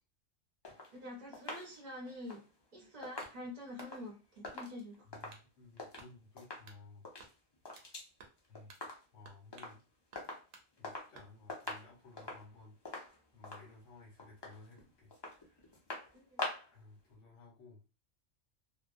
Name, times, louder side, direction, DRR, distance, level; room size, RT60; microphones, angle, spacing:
sound 1, 0.6-6.1 6.4-6.7 7.0-8.1 8.4-9.2 9.5-9.8 10.2-11.2 11.5-16.8 17.1-17.2, left 2 dB, 35° left, 0.4 m, -46 dB
voice 1, 0.9-2.4 2.7-5.0 16.1-16.4, left 1 dB, 45° right, -1 dB, 0.7 m, -46 dB
sound 2, 3.2-4.0 4.4-4.9 5.3-5.5 6.0-6.2 6.7-6.8 7.2-7.9 8.2-8.4 8.7-8.9 9.2-9.8 10.1-10.7 11.1-11.8, right 4 dB, 70° right, 0.9 m, -58 dB
voice 2, 5.1-7.0 8.5-8.7 9.1-9.8 10.8-12.7 13.3-15.1 15.4-15.7 16.7-17.8, left 3 dB, 75° left, -1 dB, 1.3 m, -56 dB
2.7 x 2.1 x 2.5 m, 0.31 s
omnidirectional pair, 1.3 m